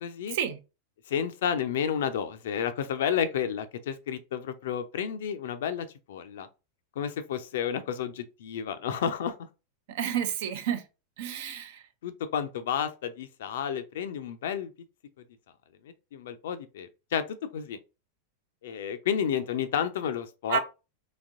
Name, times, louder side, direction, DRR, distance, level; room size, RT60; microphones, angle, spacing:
voice 1, 0.0-0.4 1.1-6.5 7.0-9.4 12.0-14.7 15.8-17.2 17.5-17.8 18.6-20.6, left 8 dB, 60° left, 0.5 m, -31 dB
voice 2, 9.9-10.8 11.2-11.8 20.5-20.6, right 8 dB, 50° right, 0.5 m, -30 dB
4.1 x 2.9 x 2.4 m
figure-of-eight pair, 90°, 0 cm